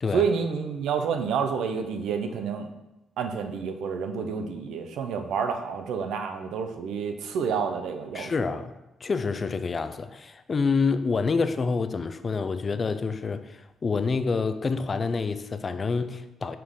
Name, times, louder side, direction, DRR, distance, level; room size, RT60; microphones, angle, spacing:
voice 1, 0.1-2.7 3.2-8.3, right 6 dB, 80° right, 6 dB, 0.6 m, -29 dB
voice 2, 8.1-8.7 9.0-16.6, left 4 dB, 35° left, 11 dB, 0.4 m, -27 dB
5.8 x 4.8 x 3.6 m, 0.97 s
cardioid pair, 90°, 0 cm